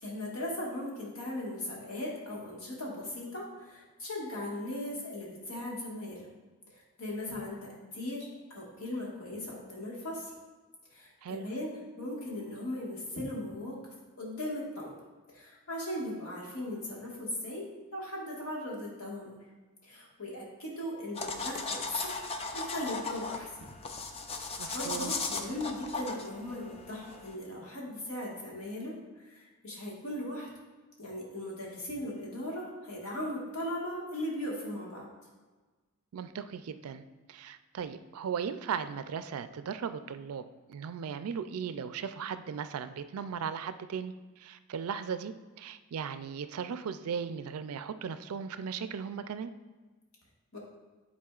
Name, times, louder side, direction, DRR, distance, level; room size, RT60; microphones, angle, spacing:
voice 1, 0.0-6.3 6.7-10.3 10.9-13.8 14.2-14.9 15.3-19.4 19.8-23.5 24.4-30.5 31.0-35.0 50.5-50.6, left 1 dB, 75° left, -3 dB, 1.7 m, -38 dB
sound 1, 21.1-27.3, left 4 dB, 25° left, 0.4 m, -37 dB
voice 2, 24.6-25.1 36.1-37.0 37.3-40.4 40.7-49.5, right 7 dB, 75° right, 11 dB, 0.4 m, -37 dB
10.5 x 4.1 x 2.4 m, 1.3 s
head